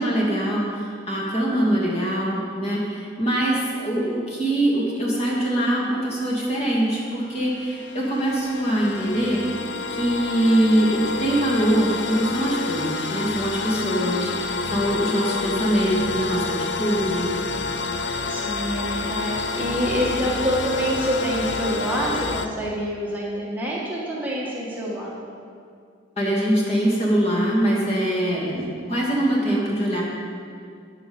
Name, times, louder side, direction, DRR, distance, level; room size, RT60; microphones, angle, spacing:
voice 1, 0.0-9.4 9.9-17.3 26.2-30.0, right 1 dB, 35° left, -4 dB, 2.6 m, -23 dB
sound 1, 7.2-22.5, left 4 dB, 65° left, 0.6 m, -28 dB
voice 2, 13.8-14.2 18.3-25.1, equal, 10° right, -6 dB, 1.7 m, -27 dB
9.4 x 9.1 x 7.3 m, 2.2 s
head